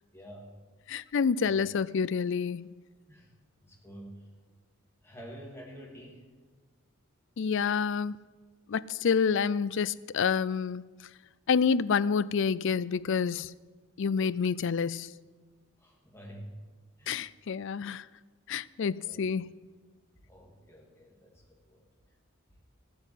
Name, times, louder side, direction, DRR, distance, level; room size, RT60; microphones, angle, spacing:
voice 1, 0.1-0.5 1.4-1.6 3.1-3.3 3.6-4.2 5.0-6.3 15.8-16.6 17.0-17.2 19.0-19.2 20.3-21.9, equal, 10° left, 2.8 m, -48 dB
voice 2, 0.9-2.6 7.4-8.2 8.7-10.8 11.5-13.5 14.0-15.1 17.1-18.1 18.5-19.5, left 6 dB, 60° left, 0.4 m, -28 dB
15.0 x 7.9 x 8.2 m
head